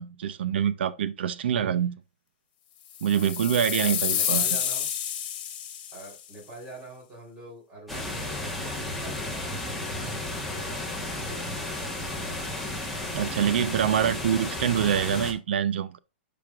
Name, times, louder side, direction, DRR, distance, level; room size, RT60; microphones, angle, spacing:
voice 1, 0.0-2.0 3.0-4.4 13.1-16.0, right 9 dB, 65° right, 0.6 m, -25 dB
sound 1, 2.9-6.1, left 9 dB, 40° left, 1.7 m, -29 dB
voice 2, 3.8-4.9 5.9-11.5, right 2 dB, 20° right, 3.5 m, -45 dB
sound 2, 7.9-15.3, left 1 dB, ahead, 1.2 m, -33 dB
10.5 x 5.2 x 2.4 m
hypercardioid pair, 160°, 6 cm